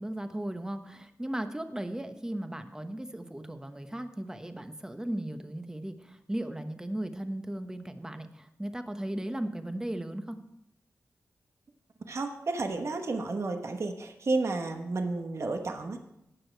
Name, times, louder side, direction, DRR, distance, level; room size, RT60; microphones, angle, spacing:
voice 1, 0.0-10.4, right 1 dB, 10° right, 8 dB, 1.1 m, -36 dB
voice 2, 12.1-16.0, right 3 dB, 55° right, 5 dB, 1.2 m, -31 dB
18.0 x 6.4 x 4.6 m, 0.83 s
cardioid pair, 65°, 6 cm